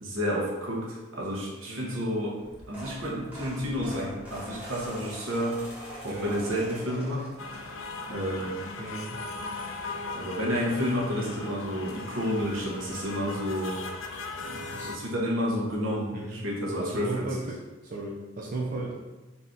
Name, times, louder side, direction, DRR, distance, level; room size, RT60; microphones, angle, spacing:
voice 1, 0.0-2.4 2.7-8.6 10.1-13.8 14.4-17.3, equal, 75° right, -3 dB, 1.1 m, -31 dB
voice 2, 1.7-2.0 6.0-6.4 8.8-9.2 14.7-14.9 16.1-16.4 16.8-19.0, right 2 dB, 40° right, -4 dB, 0.5 m, -35 dB
sound 1, 2.4-8.0 8.5-8.8 10.0-10.1 10.3-10.4 10.8-10.9, equal, 10° right, 1.4 m, -43 dB
sound 2, 7.4-15.0, left 3 dB, 65° left, 0.4 m, -38 dB
4.0 x 2.7 x 3.7 m, 1.2 s
head